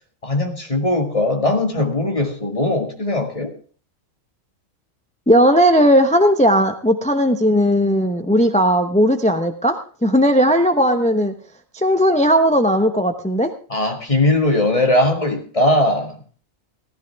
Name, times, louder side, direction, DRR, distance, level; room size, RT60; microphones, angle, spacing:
voice 1, 0.2-3.5 13.7-16.2, left 1 dB, 25° left, 4 dB, 2.0 m, -19 dB
voice 2, 5.3-11.3 11.7-13.5, equal, 5° left, 7 dB, 0.8 m, -16 dB
15.5 x 14.5 x 3.5 m, 0.40 s
omnidirectional pair, 1.3 m